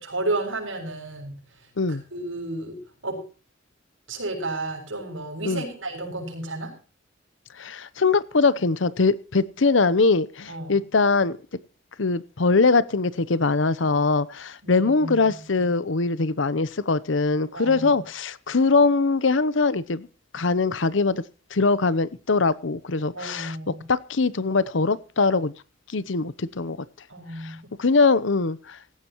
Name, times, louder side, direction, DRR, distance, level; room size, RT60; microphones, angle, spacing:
voice 1, 0.0-1.4 1.9-3.2 4.1-6.7 10.5-10.8 14.6-15.7 17.5-17.9 23.1-23.9 27.1-27.6, right 2 dB, 85° right, 7.1 m, -32 dB
voice 2, 7.6-11.4 12.0-20.1 20.3-21.2 21.5-25.5 25.9-26.8 27.4-28.8, left 3 dB, 70° left, 0.8 m, -22 dB
17.5 x 15.5 x 3.0 m
head